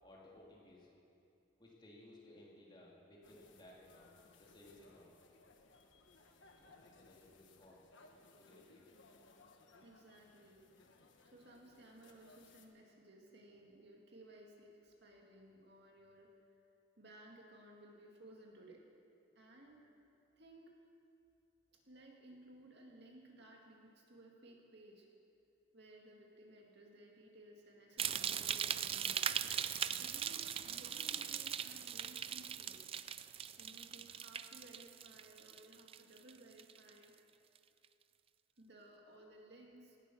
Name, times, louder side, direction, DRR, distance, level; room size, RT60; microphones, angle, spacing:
voice 1, 0.0-0.9 1.6-5.2 5.9-6.0 6.6-7.8 8.4-8.9, left 1 dB, 25° left, -4 dB, 3.0 m, -60 dB
sound 1, 3.2-12.7, left 3 dB, 65° left, 1.3 m, -64 dB
voice 2, 9.8-10.7 11.2-16.4 17.0-18.9 19.4-19.9 20.4-20.8 21.7-25.1 25.7-29.4 30.0-32.8 33.6-37.2 38.6-40.0, right 1 dB, 55° right, 0 dB, 2.2 m, -59 dB
sound 2, 28.0-36.3 36.6-37.0 37.6-37.7, right 9 dB, 30° right, 0.3 m, -40 dB
18.0 x 12.5 x 6.3 m, 2.6 s
head